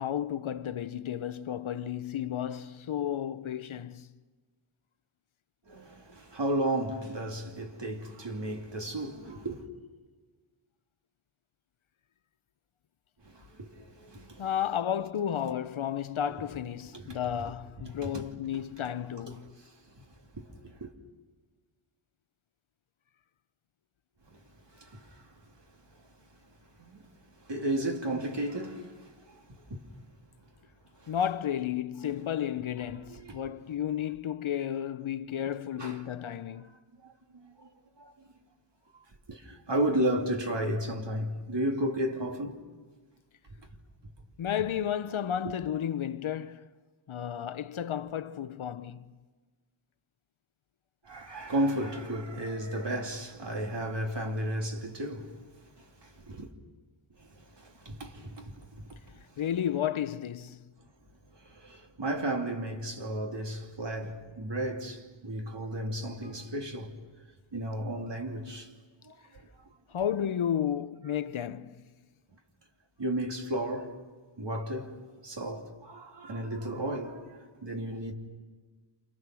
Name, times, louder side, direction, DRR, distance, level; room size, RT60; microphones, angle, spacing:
voice 1, 0.0-4.1 14.4-19.6 31.1-36.7 44.4-46.6 47.1-49.1 59.4-60.6 69.9-71.9, left 9 dB, 75° left, 0.8 m, -32 dB
voice 2, 5.7-9.6 13.3-14.5 16.9-17.2 18.0-18.2 19.3-19.4 20.3-20.9 24.3-24.4 24.8-25.0 26.8-27.0 27.5-29.1 29.5-29.8 31.0-31.1 33.1-33.4 35.8-36.0 37.0-37.7 38.0-38.1 39.3-42.6 45.4-45.5 51.0-55.4 56.0-56.5 57.3-59.0 61.5-66.9 67.5-68.7 69.0-69.1 73.0-73.9 74.4-74.9 75.2-78.1, right 1 dB, 60° right, 2.8 m, -33 dB
29.5 x 28.0 x 6.2 m
wide cardioid pair, 95°, 48 cm